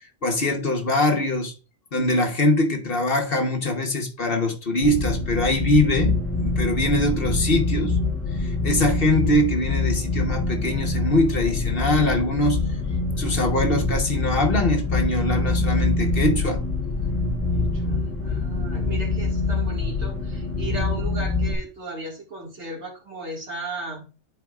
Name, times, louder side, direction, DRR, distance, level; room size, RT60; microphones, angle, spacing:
voice 1, 0.2-1.5 1.9-7.9 8.4-12.6 13.2-16.6, left 1 dB, 50° left, 1.3 m, -23 dB
sound 1, 4.8-21.5, left 3 dB, 10° left, 1.2 m, -25 dB
voice 2, 17.5-24.1, right 2 dB, 65° right, 2.3 m, -36 dB
11.0 x 4.5 x 2.4 m
omnidirectional pair, 1.3 m